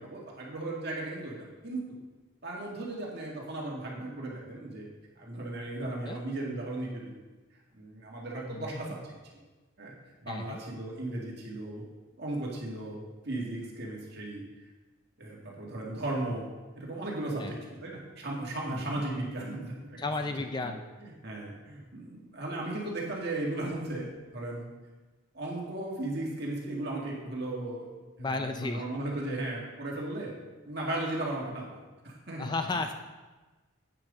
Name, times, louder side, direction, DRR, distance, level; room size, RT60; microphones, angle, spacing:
voice 1, 0.0-2.0 2.4-4.9 5.2-7.0 7.7-9.4 9.8-9.9 10.2-11.8 12.2-14.4 15.2-16.5 16.8-24.7 25.3-27.9 28.2-30.3 30.6-31.8 32.0-32.9, right 2 dB, 50° right, -3 dB, 2.0 m, -36 dB
voice 2, 8.5-8.9 10.3-10.6 17.4-17.5 18.7-19.0 20.0-20.8 28.2-28.8 32.4-32.9, left 3 dB, 20° left, 6 dB, 0.3 m, -34 dB
8.8 x 6.1 x 5.0 m, 1.2 s
head